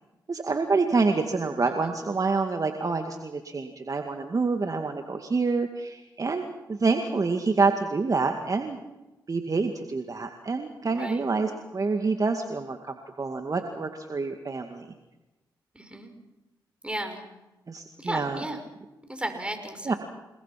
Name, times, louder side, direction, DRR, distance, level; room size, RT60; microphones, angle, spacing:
voice 1, 0.3-8.8 9.3-14.9 17.7-18.4 19.9-20.0, right 4 dB, 40° right, 5 dB, 2.2 m, -27 dB
voice 2, 10.9-11.2 15.7-16.1 16.8-17.2 18.0-18.6 19.1-20.0, right 1 dB, 10° right, 6 dB, 6.0 m, -34 dB
29.5 x 20.0 x 6.0 m, 1.1 s
supercardioid pair, 50°, 9 cm